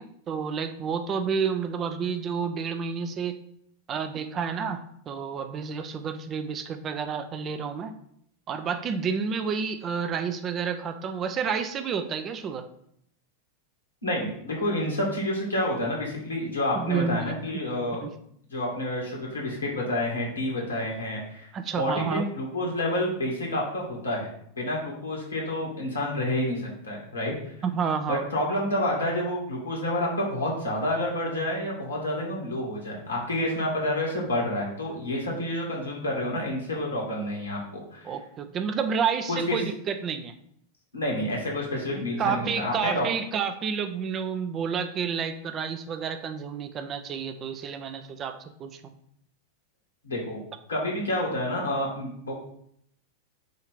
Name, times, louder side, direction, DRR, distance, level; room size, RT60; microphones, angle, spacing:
voice 1, 0.0-3.4 3.9-7.9 8.5-12.7 16.8-17.4 18.0-18.1 21.5-22.3 27.6-28.2 38.0-40.3 42.0-48.9, right 6 dB, 30° right, 8 dB, 0.5 m, -30 dB
voice 2, 14.0-18.0 18.5-21.5 21.8-24.3 24.6-27.3 28.1-38.1 39.3-39.6 40.9-43.1 50.0-50.4 50.7-52.4, left 1 dB, 75° left, -3 dB, 2.1 m, -29 dB
6.5 x 2.8 x 5.2 m, 0.70 s
figure-of-eight pair, 90°, 0 cm